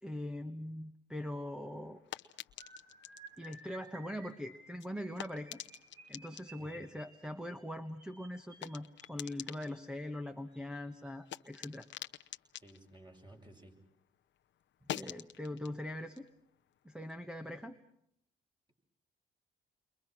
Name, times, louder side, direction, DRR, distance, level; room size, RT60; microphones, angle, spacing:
voice 1, 0.0-2.0 3.4-5.6 6.1-11.9 14.9-16.3 16.8-17.8, left 1 dB, 5° right, 5 dB, 1.3 m, -42 dB
sound 1, 1.3-14.0 14.3-17.6, left 11 dB, 70° left, 0.9 m, -50 dB
sound 2, 2.6-9.8 10.5-10.8 11.0-11.3 11.6-11.8, right 2 dB, 65° right, 7.9 m, -56 dB
voice 2, 12.5-13.7, right 1 dB, 20° right, 2 dB, 6.6 m, -56 dB
30.0 x 23.0 x 6.2 m, 0.74 s
cardioid pair, 90°, 20 cm